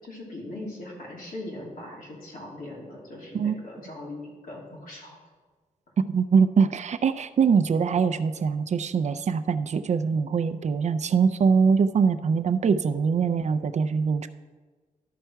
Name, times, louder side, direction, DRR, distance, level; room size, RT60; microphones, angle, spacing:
voice 1, 0.0-5.2, left 1 dB, 90° left, -4 dB, 2.8 m, -40 dB
voice 2, 6.1-14.3, right 6 dB, 55° right, 11 dB, 0.4 m, -23 dB
12.0 x 5.8 x 4.5 m, 1.4 s
wide cardioid pair, 170°, 14 cm